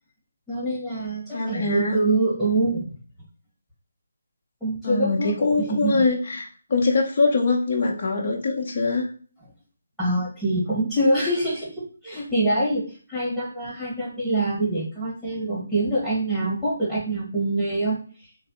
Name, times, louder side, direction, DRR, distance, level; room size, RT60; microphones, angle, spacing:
voice 1, 0.5-2.9 4.6-6.0 10.0-18.0, right 1 dB, 5° right, -9 dB, 1.8 m, -25 dB
voice 2, 1.3-2.0 4.8-9.1, left 3 dB, 40° left, -1 dB, 0.7 m, -23 dB
3.5 x 3.1 x 3.0 m, 0.41 s
figure-of-eight pair, 155°, 0 cm